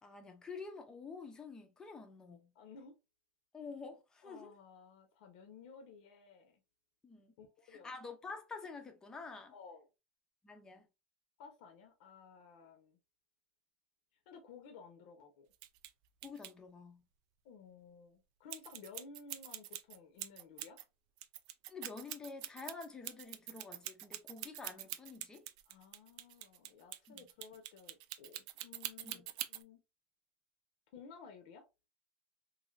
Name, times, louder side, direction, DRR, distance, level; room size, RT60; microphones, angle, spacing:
voice 1, 0.0-2.5 3.5-4.5 7.0-7.3 7.7-9.5 10.4-10.9 16.2-17.0 21.7-25.5 27.1-27.3 29.0-29.3, left 4 dB, 10° left, 0.5 m, -48 dB
voice 2, 2.5-3.0 4.2-6.6 7.4-7.9 9.5-9.9 11.4-13.0 14.3-15.5 17.4-20.8 25.7-29.2 29.5-29.8 30.9-31.7, left 5 dB, 55° left, 0.7 m, -55 dB
sound 1, 15.5-15.9 16.2-16.5 18.5-20.8 21.2-29.6, right 14 dB, 50° right, 0.3 m, -45 dB
3.2 x 2.7 x 2.4 m
supercardioid pair, 160°, 6 cm